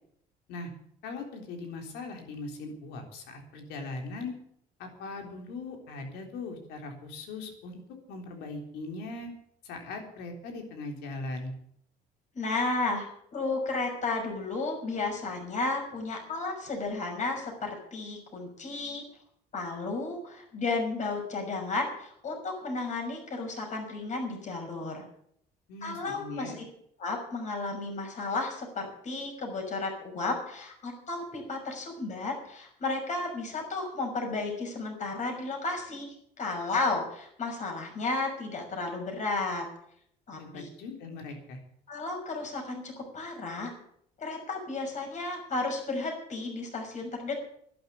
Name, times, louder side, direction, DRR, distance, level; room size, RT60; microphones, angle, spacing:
voice 1, 1.0-4.3 4.8-7.8 8.1-9.3 9.6-11.5 25.7-26.6 40.4-41.6, left 3 dB, 90° left, 3 dB, 3.7 m, -40 dB
voice 2, 12.3-19.0 19.5-25.0 25.8-26.5 27.0-39.6 40.3-40.7 41.9-43.7 44.2-47.5, left 3 dB, 45° left, 2 dB, 6.0 m, -33 dB
11.5 x 11.0 x 8.2 m, 0.67 s
cardioid pair, 110°, 17 cm